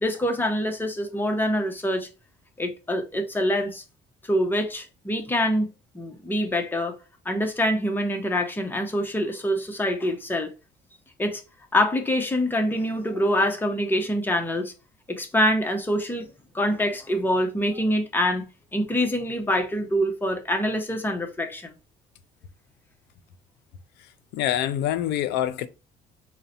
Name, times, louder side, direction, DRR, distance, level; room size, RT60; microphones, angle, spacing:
voice 1, 0.0-2.1 2.6-3.8 4.2-5.7 5.9-7.0 7.2-10.5 11.2-11.4 11.7-14.7 15.1-16.3 16.5-21.7, equal, 10° left, 0.7 m, -25 dB
voice 2, 24.3-25.7, left 11 dB, 85° left, 0.5 m, -25 dB
3.9 x 2.2 x 4.1 m
cardioid pair, 110°, 17 cm